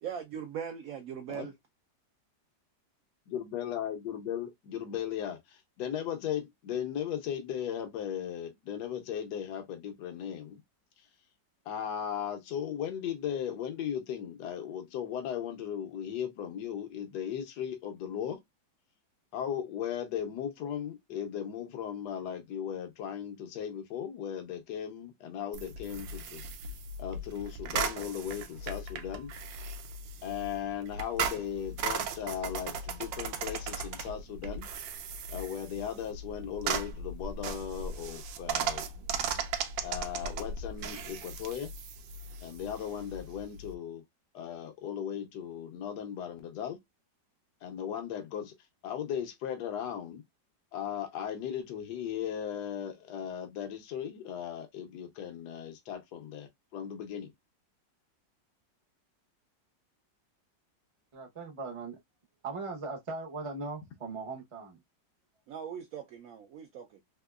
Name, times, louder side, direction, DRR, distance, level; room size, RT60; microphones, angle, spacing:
voice 1, 0.0-1.5 65.5-67.0, right 8 dB, 70° right, 0.8 m, -40 dB
voice 2, 3.3-10.6 11.7-18.4 19.3-26.4 27.0-29.3 30.2-34.7 35.3-38.8 39.8-41.7 42.4-44.0 44.3-46.8 47.6-48.5 48.8-50.2 50.7-57.3, left 9 dB, 70° left, 1.3 m, -37 dB
sound 1, 25.5-43.7, right 5 dB, 90° right, 1.3 m, -37 dB
voice 3, 61.1-62.0 62.4-64.8, right 3 dB, 35° right, 0.5 m, -39 dB
3.6 x 2.9 x 2.3 m
omnidirectional pair, 2.0 m